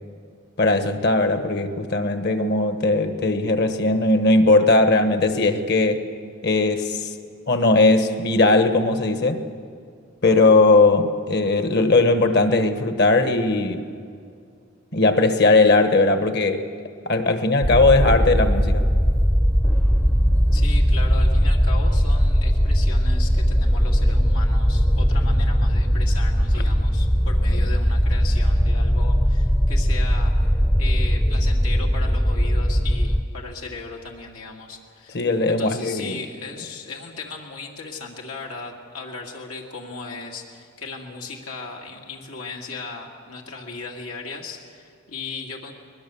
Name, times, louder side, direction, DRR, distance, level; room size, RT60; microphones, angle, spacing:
voice 1, 0.6-6.0 6.4-7.1 7.5-9.4 10.2-13.9 14.9-16.7 17.0-18.9 26.5-26.6 35.1-36.2, left 2 dB, 50° left, 8 dB, 1.3 m, -19 dB
sound 1, 17.6-33.2, equal, 10° left, 0.6 m, -19 dB
voice 2, 20.5-30.3 30.8-35.2 35.5-45.7, left 4 dB, 85° left, 0 dB, 2.3 m, -37 dB
21.5 x 20.5 x 7.0 m, 2.2 s
head